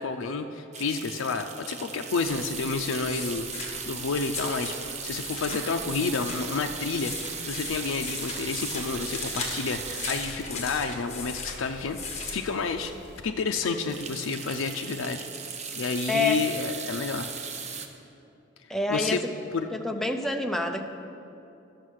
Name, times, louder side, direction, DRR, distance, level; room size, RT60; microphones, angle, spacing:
voice 1, 0.0-12.9 13.2-15.2 15.8-17.3 18.9-19.2 19.5-19.7, left 4 dB, 90° left, 4 dB, 0.5 m, -30 dB
sound 1, 0.7-12.0 12.5-12.6 12.9-13.0 13.3-17.9, right 6 dB, 35° right, 0.7 m, -38 dB
sound 2, 2.2-13.2, left 4 dB, 35° left, 1.5 m, -39 dB
voice 2, 16.1-16.4 18.7-19.2 19.7-20.8, left 2 dB, ahead, 4 dB, 0.6 m, -27 dB
11.0 x 6.5 x 6.4 m, 2.8 s
head